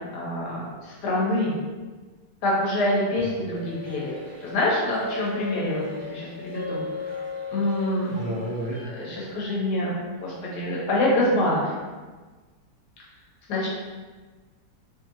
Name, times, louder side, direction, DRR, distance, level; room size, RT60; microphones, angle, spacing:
voice 1, 0.0-1.5 2.4-4.1 4.4-6.8 7.5-8.1 8.9-11.7 13.5-13.7, left 1 dB, 85° left, -5 dB, 1.4 m, -26 dB
sound 1, 3.5-8.8, left 4 dB, 80° right, 1.2 m, -36 dB
voice 2, 8.1-8.8, right 1 dB, 65° right, -4 dB, 0.8 m, -30 dB
3.1 x 2.7 x 2.6 m, 1.3 s
omnidirectional pair, 1.8 m